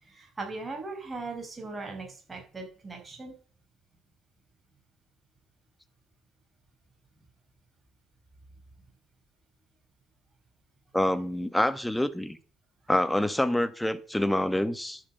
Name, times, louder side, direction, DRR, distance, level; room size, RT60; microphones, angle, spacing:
voice 1, 0.1-3.3, right 3 dB, 30° right, 5.5 m, -39 dB
voice 2, 10.9-12.4 12.9-15.0, left 1 dB, 5° left, 1.4 m, -26 dB
11.5 x 5.0 x 7.7 m
supercardioid pair, 70°, 0 cm